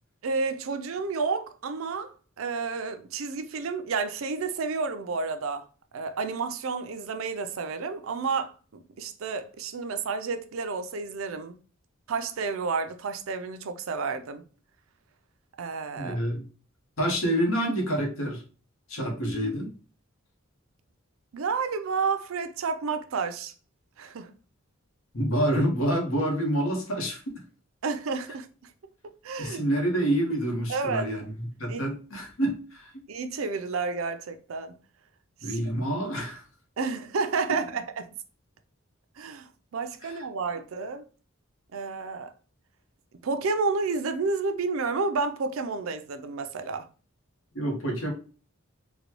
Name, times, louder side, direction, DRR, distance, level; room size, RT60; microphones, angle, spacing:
voice 1, 0.2-5.6 5.9-11.6 12.1-14.4 15.6-16.2 21.3-23.5 24.0-24.3 27.8-28.5 29.2-29.6 30.7-31.1 31.7-31.8 33.1-34.7 35.4-35.6 36.8-38.1 39.2-41.0 41.7-42.3 43.2-46.9, right 4 dB, 80° right, 0.5 m, -30 dB
voice 2, 15.9-16.5 17.0-18.4 18.9-19.7 25.1-27.2 29.4-32.9 35.4-36.4 40.0-40.2 47.5-48.1, right 1 dB, 85° left, 1.2 m, -27 dB
4.0 x 2.3 x 2.9 m
head